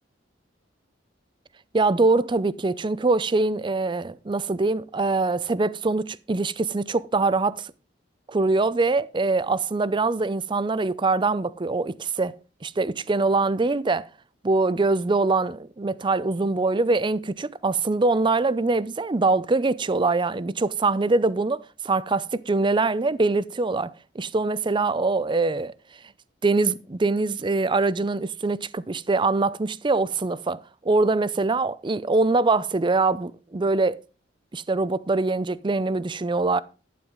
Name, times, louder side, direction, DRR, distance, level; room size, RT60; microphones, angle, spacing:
voice 1, 1.7-7.7 8.3-14.1 14.4-25.7 26.4-34.0 34.5-36.6, right 3 dB, 25° right, 0.5 m, -23 dB
12.0 x 9.0 x 3.8 m
head